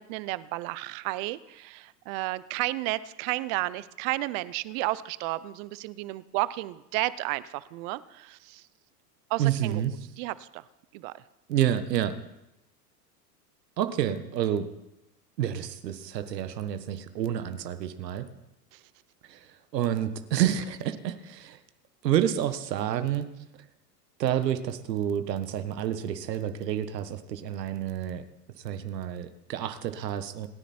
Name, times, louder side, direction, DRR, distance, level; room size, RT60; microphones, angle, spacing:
voice 1, 0.0-8.7 9.3-9.8 10.2-10.6 10.9-11.2 18.7-18.8, right 18 dB, 50° right, 17 dB, 0.9 m, -32 dB
voice 2, 9.4-9.9 11.5-12.2 13.8-14.7 15.4-18.3 19.2-21.6 22.0-23.3 24.2-28.3 28.6-30.5, right 10 dB, 80° right, 10 dB, 1.5 m, -29 dB
27.5 x 10.5 x 4.4 m, 0.91 s
hypercardioid pair, 100°, 49 cm